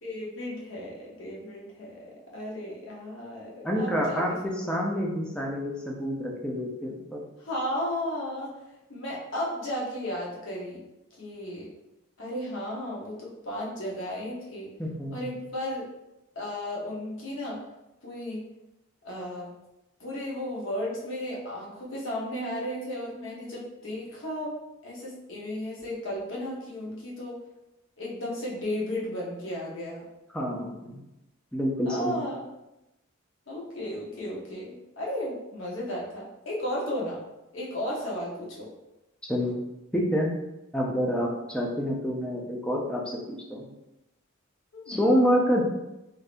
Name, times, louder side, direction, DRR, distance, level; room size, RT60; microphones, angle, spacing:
voice 1, 0.0-4.2 7.4-8.5 8.9-10.8 11.2-11.7 12.2-14.7 15.1-15.9 16.3-17.6 18.0-18.4 19.0-19.5 20.0-24.5 24.8-27.4 28.0-30.1 31.8-32.4 33.5-37.2 37.5-38.7 44.7-45.0, left 1 dB, 60° left, -4 dB, 0.9 m, -34 dB
voice 2, 3.6-4.3 4.7-7.2 14.8-15.1 30.3-31.0 31.5-32.2 39.3-39.5 39.9-40.3 40.7-43.2 43.5-43.7 44.9-45.6, equal, 5° left, -2 dB, 0.4 m, -27 dB
3.4 x 2.7 x 2.5 m, 0.94 s
head